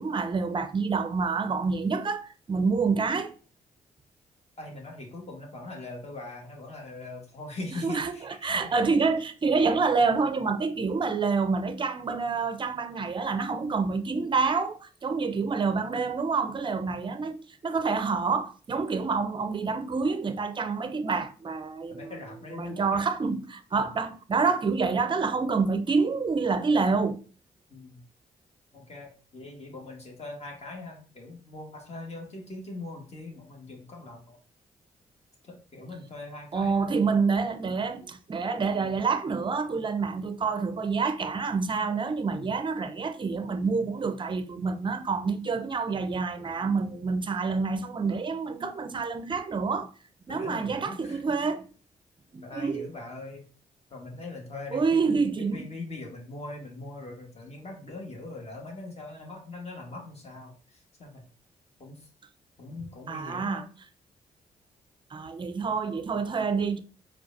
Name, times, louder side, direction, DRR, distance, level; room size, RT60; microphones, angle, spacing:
voice 1, 0.0-3.4 7.8-22.2 22.5-27.2 36.5-49.9 50.3-51.7 52.3-52.9 54.7-55.7 63.1-63.6 65.1-66.8, right 4 dB, 30° right, 0.5 m, -27 dB
voice 2, 4.6-8.8 16.8-17.0 21.9-23.1 23.8-23.9 27.7-28.0 28.7-34.4 35.4-37.1 42.3-42.5 50.3-51.2 52.4-53.5 53.9-61.3 61.8-62.1 62.6-63.7, left 2 dB, 40° left, 1.5 m, -41 dB
4.7 x 2.4 x 2.6 m
supercardioid pair, 50°, 16 cm